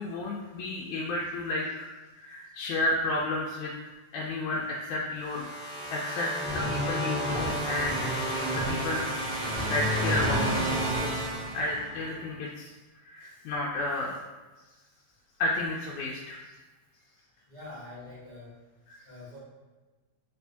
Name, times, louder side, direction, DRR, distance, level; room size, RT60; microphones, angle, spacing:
voice 1, 0.0-1.9 2.2-3.7 4.1-5.5 5.9-8.1 8.5-9.3 9.6-11.2 11.5-12.7 13.1-14.2 15.4-16.4 18.9-19.0, left 2 dB, 85° left, -3 dB, 2.0 m, -32 dB
sound 1, 5.2-12.1, equal, 60° right, 1.1 m, -30 dB
voice 2, 17.5-18.5 19.0-19.4, left 2 dB, 65° left, -13 dB, 0.4 m, -45 dB
4.9 x 2.5 x 3.4 m, 1.2 s
omnidirectional pair, 3.3 m